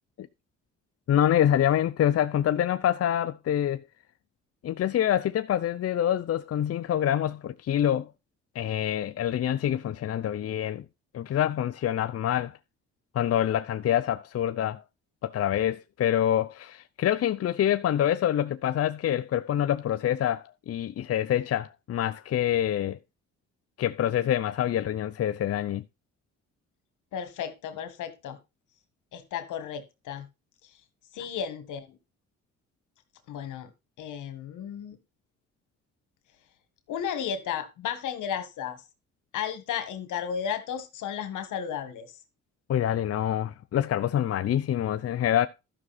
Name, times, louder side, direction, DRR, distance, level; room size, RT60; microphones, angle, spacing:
voice 1, 1.1-3.8 4.6-8.1 8.5-10.8 11.1-12.6 13.1-14.8 15.2-23.0 23.8-25.8 42.7-45.5, left 11 dB, 50° left, 0.6 m, -26 dB
voice 2, 27.1-28.4 29.1-30.3 31.1-32.0 33.3-33.7 34.0-35.0 36.9-38.8 39.3-42.1, left 8 dB, 85° left, 1.8 m, -34 dB
12.5 x 6.2 x 4.3 m
cardioid pair, 90°, 30 cm